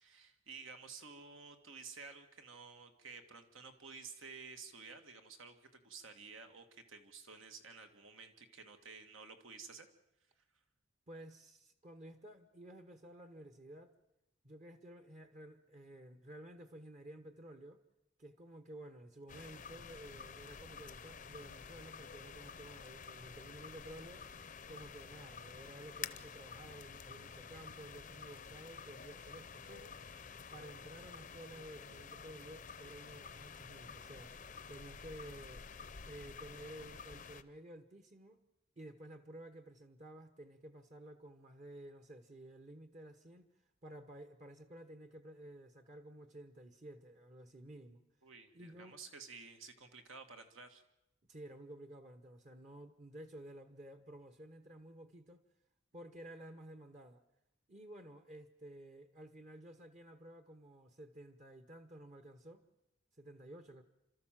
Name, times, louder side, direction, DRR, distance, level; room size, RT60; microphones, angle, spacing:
voice 1, 0.0-9.9 48.2-50.8, right 5 dB, 80° right, 1.9 m, -52 dB
voice 2, 11.1-13.9 14.4-17.8 18.2-24.3 24.7-29.9 30.5-34.3 34.7-35.7 36.0-38.4 38.8-43.5 43.8-48.0 48.5-49.0 51.3-55.4 55.9-57.2 57.7-62.6 63.2-63.8, right 1 dB, 35° right, 1.0 m, -53 dB
sound 1, 19.3-37.4, left 6 dB, 40° left, 0.7 m, -50 dB
30.0 x 13.0 x 7.5 m
head